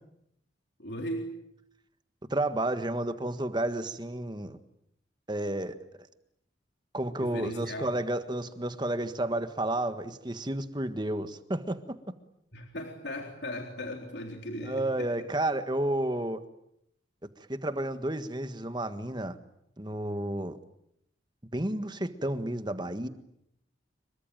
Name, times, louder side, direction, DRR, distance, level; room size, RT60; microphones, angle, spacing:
voice 1, 0.8-1.4 7.2-7.9 12.5-15.3, equal, 60° left, 2 dB, 3.8 m, -37 dB
voice 2, 2.3-4.6 5.3-5.7 6.9-12.0 14.6-16.4 17.4-19.4 19.8-20.6 21.5-23.1, right 1 dB, 20° right, 10 dB, 1.5 m, -31 dB
26.5 x 23.5 x 9.1 m, 0.78 s
head